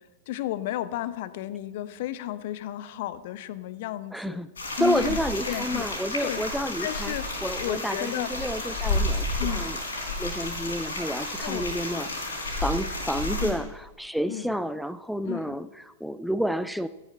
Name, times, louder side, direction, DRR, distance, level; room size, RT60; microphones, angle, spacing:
voice 1, 0.3-4.4 4.8-5.2 5.4-5.8 6.2-6.4 6.8-7.3 7.6-8.3 9.4-9.7 11.4-11.7 13.4-13.6 14.3-14.6 15.3-15.6, left 14 dB, 50° left, 15 dB, 0.7 m, -33 dB
voice 2, 4.1-4.5 4.8-7.1 7.4-9.8 10.2-16.9, equal, ahead, 13 dB, 0.4 m, -30 dB
sound 1, 4.6-13.5, left 2 dB, 70° left, 4.0 m, -31 dB
14.0 x 10.5 x 5.6 m, 1.2 s
figure-of-eight pair, 95°, 0 cm